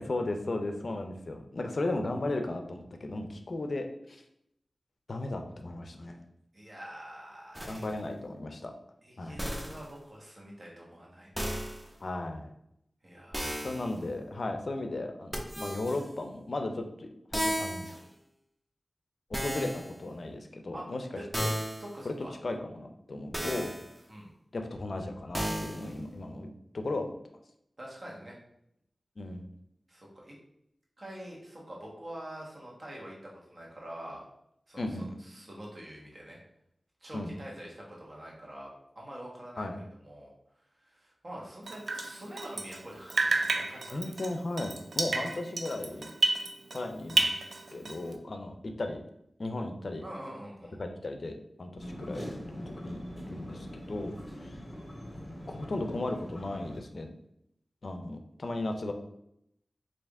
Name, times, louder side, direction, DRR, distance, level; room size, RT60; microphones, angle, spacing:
voice 1, 0.0-4.2 5.1-6.2 7.7-8.7 9.2-9.4 12.0-12.5 13.6-18.0 19.3-21.0 21.4-21.5 22.0-22.1 22.4-23.7 24.5-26.5 26.7-27.2 29.2-29.5 34.8-35.1 37.1-37.3 39.6-39.8 43.9-46.1 46.7-47.3 47.7-49.0 49.4-50.0 50.8-52.3 52.5-54.2 54.4-54.5 55.5-57.1 57.8-58.9, left 2 dB, 65° left, 5 dB, 0.4 m, -35 dB
voice 2, 6.5-7.8 9.0-11.8 13.0-13.7 20.7-20.8 21.1-21.2 21.8-22.3 24.1-24.3 27.8-28.3 29.9-30.3 31.0-34.3 34.7-36.4 37.0-40.3 40.8-44.1 50.0-50.8, right 1 dB, 50° right, -3 dB, 1.1 m, -46 dB
sound 1, 7.6-7.9 9.4-9.9 11.4-11.9 13.3-13.9 15.3-16.0 17.3-18.0 19.3-20.0 21.3-21.9 23.3-23.9 25.3-25.9, equal, 15° right, 0.7 m, -34 dB
Drip, 41.7-42.8 43.1-46.8 47.1-48.1, right 3 dB, 80° right, 0.4 m, -30 dB
sound 2, 51.8-56.8, equal, ahead, 1.4 m, -42 dB
3.3 x 2.5 x 3.5 m, 0.77 s
cardioid pair, 50°, 0 cm